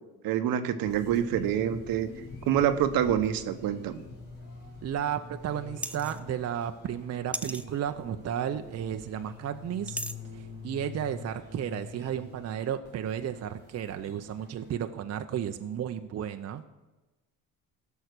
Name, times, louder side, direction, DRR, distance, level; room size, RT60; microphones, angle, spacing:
voice 1, 0.2-2.1 2.5-4.0, right 10 dB, 65° right, 10 dB, 1.0 m, -26 dB
sound 1, 0.8-14.7, left 4 dB, 80° left, 3.6 m, -46 dB
voice 2, 4.8-10.0 10.3-16.6, right 9 dB, 40° right, 7 dB, 0.7 m, -33 dB
sound 2, 5.8-6.2 7.3-7.6 9.9-10.1, right 1 dB, 5° right, 0.5 m, -35 dB
15.5 x 5.7 x 6.6 m, 1.1 s
supercardioid pair, 80°, 37 cm